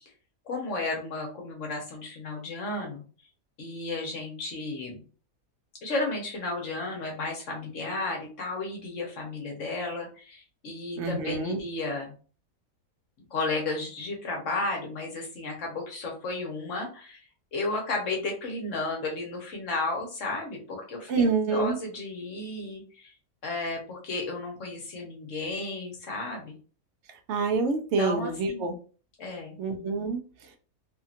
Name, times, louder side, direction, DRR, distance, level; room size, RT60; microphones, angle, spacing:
voice 1, 0.5-3.0 3.6-5.0 5.8-12.1 13.3-17.2 17.5-23.1 23.4-26.5 28.0-28.6 29.2-29.6, left 2 dB, 60° left, 0 dB, 1.2 m, -33 dB
voice 2, 11.0-11.6 21.1-21.8 27.1-28.7 29.6-30.6, right 4 dB, 65° right, 5 dB, 0.8 m, -27 dB
2.8 x 2.7 x 2.4 m, 0.38 s
omnidirectional pair, 1.5 m